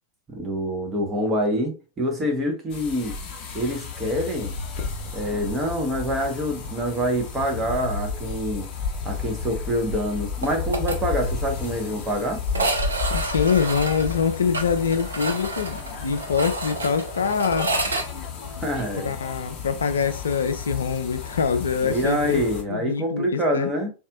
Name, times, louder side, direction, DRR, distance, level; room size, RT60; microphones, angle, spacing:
voice 1, 0.3-3.2 3.5-4.5 5.1-8.7 9.0-12.4 18.5-19.1 21.8-23.9, equal, 20° right, 1.1 m, -26 dB
sound 1, 2.7-22.6, left 5 dB, 35° left, 0.8 m, -33 dB
sound 2, 10.4-11.0 11.3-11.4 11.6-11.7 12.5-18.1, right 2 dB, 75° right, 0.6 m, -29 dB
voice 2, 13.1-17.7 19.0-22.4 22.7-23.7, left 6 dB, 70° left, 0.4 m, -24 dB
4.0 x 2.6 x 2.4 m
figure-of-eight pair, 90°, 0 cm